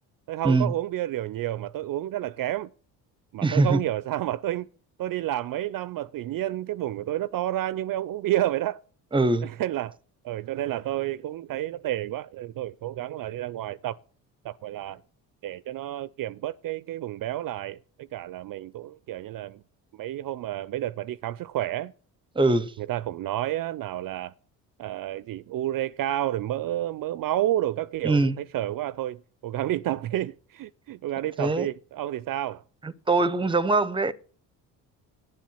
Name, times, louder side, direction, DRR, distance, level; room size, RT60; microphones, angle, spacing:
voice 1, 0.3-2.7 3.3-4.7 5.0-8.8 9.4-10.0 10.2-14.0 14.4-15.0 15.4-17.8 18.1-19.6 19.9-21.9 22.9-24.3 24.8-32.6, right 13 dB, 50° right, 0.5 m, -30 dB
voice 2, 3.4-3.8 9.1-9.5 22.3-22.7 28.0-28.4 31.4-31.7 32.8-34.1, right 3 dB, 10° right, 0.7 m, -22 dB
10.5 x 7.5 x 7.0 m
supercardioid pair, 70°, 44 cm